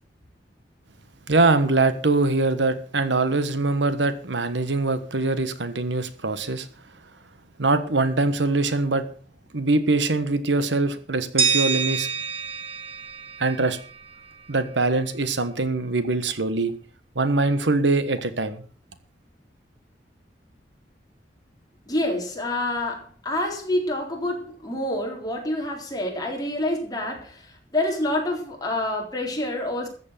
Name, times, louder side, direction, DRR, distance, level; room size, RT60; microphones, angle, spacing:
voice 1, 1.3-6.7 7.6-9.0 9.5-12.1 13.4-13.8 14.5-16.7 17.1-18.6, right 3 dB, 80° right, 1.3 m, -23 dB
sound 1, 11.4-14.3, right 6 dB, 30° right, 1.4 m, -27 dB
voice 2, 21.9-29.9, left 1 dB, 20° left, 4.0 m, -27 dB
14.0 x 8.4 x 6.6 m
head